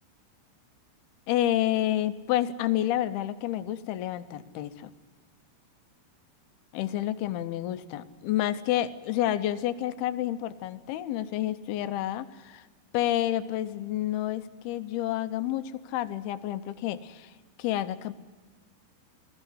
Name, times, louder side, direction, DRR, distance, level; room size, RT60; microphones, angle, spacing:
voice 1, 1.3-4.9 6.7-12.7 12.9-17.3 17.6-18.1, left 13 dB, 75° left, 11 dB, 2.5 m, -29 dB
20.5 x 14.5 x 10.0 m, 1.3 s
omnidirectional pair, 4.9 m